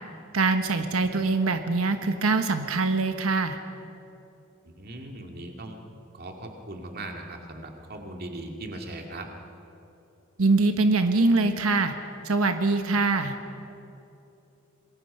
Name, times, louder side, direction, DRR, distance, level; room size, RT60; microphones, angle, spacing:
voice 1, 0.3-3.6 10.4-11.9 12.2-13.3, right 3 dB, 90° right, 7 dB, 1.1 m, -23 dB
voice 2, 1.0-1.3 4.6-5.8 6.1-9.3, right 2 dB, 45° right, 3 dB, 2.3 m, -39 dB
26.5 x 21.0 x 5.6 m, 2.9 s
head